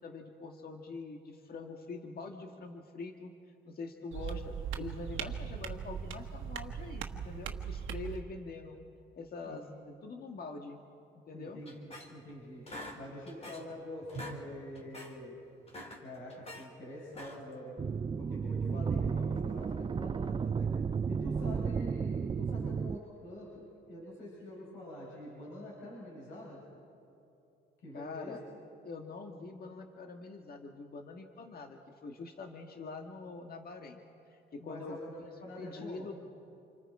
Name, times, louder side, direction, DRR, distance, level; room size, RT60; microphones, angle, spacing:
voice 1, 0.0-3.3 3.6-8.8 9.1-10.8 11.3-11.6 27.9-28.4 28.8-34.0 34.3-35.0 35.4-36.2, left 3 dB, 50° left, 4 dB, 1.7 m, -44 dB
sound 1, 4.1-8.2, right 7 dB, 85° right, 1.3 m, -39 dB
voice 2, 11.3-12.6 12.9-15.4 16.0-17.7 18.2-20.7 21.1-26.6 27.8-28.4 34.6-36.1, left 1 dB, 80° left, -6 dB, 7.8 m, -46 dB
sound 2, 11.6-12.3 12.7-13.8 14.0-14.4 14.7-15.1 15.6-16.7 17.1-17.6, equal, 30° left, 3.4 m, -45 dB
sound 3, 17.8-23.0, right 6 dB, 25° right, 0.4 m, -33 dB
28.5 x 25.0 x 4.9 m, 2.7 s
cardioid pair, 90°, 20 cm